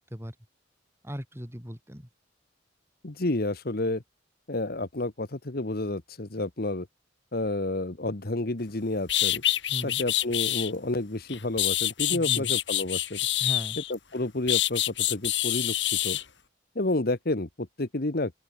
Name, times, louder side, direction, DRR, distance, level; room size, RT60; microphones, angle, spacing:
voice 1, 1.0-2.1 9.7-10.0 12.1-12.5 13.4-13.8, equal, 15° right, 6.1 m, -37 dB
voice 2, 3.0-4.0 4.5-6.9 7.3-9.4 9.8-13.2 13.9-15.7 16.0-16.2 16.7-18.3, left 2 dB, 55° left, 1.4 m, -30 dB
sound 1, 8.7-8.8 9.1-10.7 11.3-13.9 14.5-16.2, left 14 dB, 75° left, 3.6 m, -26 dB
open air
head